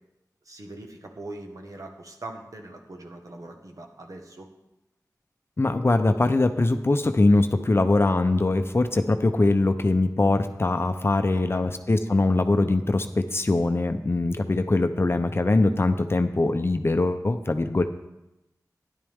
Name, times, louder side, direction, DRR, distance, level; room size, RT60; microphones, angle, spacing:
voice 1, 0.4-4.5 11.3-11.7, right 2 dB, 60° right, 2 dB, 1.5 m, -41 dB
voice 2, 5.6-17.8, left 2 dB, 40° left, 8 dB, 0.7 m, -22 dB
13.0 x 11.0 x 3.6 m, 0.94 s
wide cardioid pair, 90°, 7 cm